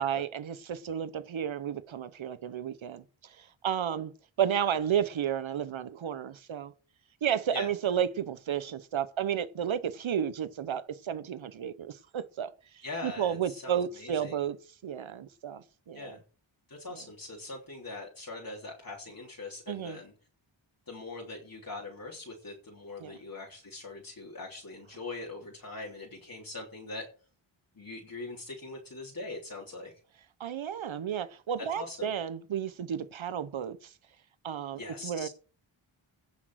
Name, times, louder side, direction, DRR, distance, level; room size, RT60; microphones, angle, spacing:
voice 1, 0.0-4.1 4.4-6.7 7.2-14.6 14.8-16.1 19.7-20.0 23.0-23.2 30.4-33.9 34.4-35.3, right 9 dB, 75° right, 0.9 m, -32 dB
voice 2, 12.8-14.4 15.9-16.2 16.7-20.1 20.9-27.1 27.8-29.9 31.6-32.1 34.8-35.3, left 3 dB, 45° left, 3.5 m, -42 dB
17.0 x 6.2 x 6.3 m
wide cardioid pair, 115°, 47 cm